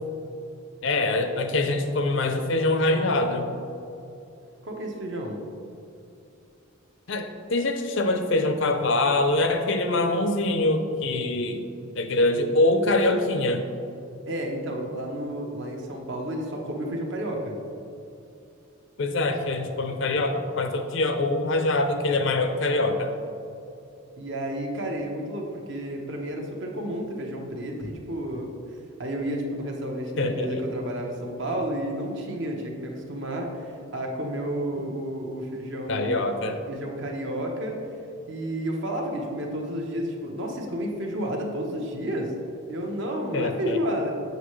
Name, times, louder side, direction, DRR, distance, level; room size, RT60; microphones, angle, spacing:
voice 1, 0.8-3.5 7.1-11.6 12.0-13.6 19.0-23.1 30.2-30.6 35.9-36.6 43.3-43.8, left 2 dB, 55° left, 6 dB, 0.6 m, -24 dB
voice 2, 4.6-5.4 14.3-17.6 24.2-28.5 29.0-36.3 36.7-37.8 38.3-42.3 42.7-44.1, right 1 dB, 55° right, 1 dB, 1.0 m, -31 dB
8.1 x 6.5 x 3.2 m, 2.7 s
head